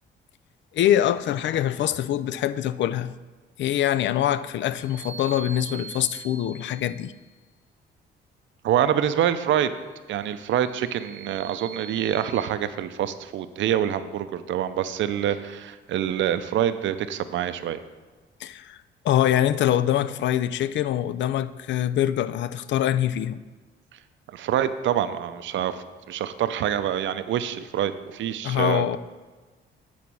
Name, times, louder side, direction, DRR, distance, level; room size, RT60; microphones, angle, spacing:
voice 1, 0.7-3.1 3.6-7.1 18.4-18.8 19.0-23.4 28.4-29.0, left 11 dB, 65° left, 0.4 m, -24 dB
sound 1, 4.7-7.2 10.2-12.3, right 5 dB, 35° left, 2.2 m, -43 dB
voice 2, 8.6-9.7 10.1-17.8 24.3-28.8, right 10 dB, 70° right, 0.5 m, -26 dB
8.6 x 4.1 x 6.0 m
cardioid pair, 90°, 20 cm